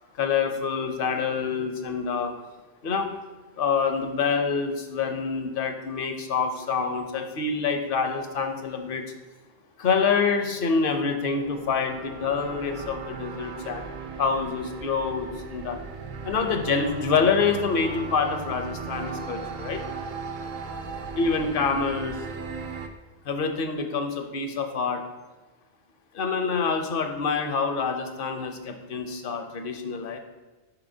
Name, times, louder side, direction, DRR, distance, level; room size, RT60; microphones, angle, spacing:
voice 1, 0.2-2.3 2.8-3.1 3.6-9.0 9.8-13.9 14.2-15.8 16.2-19.8 21.2-22.2 23.3-25.0 26.1-30.2, left 5 dB, 65° left, 6 dB, 0.8 m, -26 dB
sound 1, 11.0-22.9, right 5 dB, 60° right, 0.6 m, -37 dB
6.9 x 5.4 x 2.7 m, 1.2 s
omnidirectional pair, 1.0 m